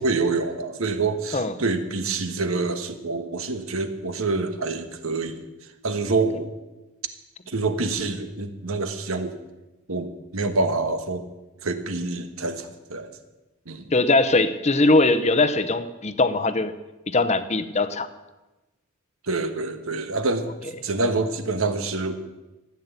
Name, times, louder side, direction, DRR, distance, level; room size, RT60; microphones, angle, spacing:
voice 1, 0.0-5.4 5.8-6.5 7.5-9.4 9.9-11.2 11.6-13.1 13.6-13.9 19.2-22.2, right 3 dB, 80° right, 8 dB, 1.4 m, -26 dB
voice 2, 13.9-16.7 17.1-18.1, left 2 dB, 30° left, 12 dB, 0.8 m, -21 dB
15.0 x 9.4 x 8.2 m, 1.1 s
head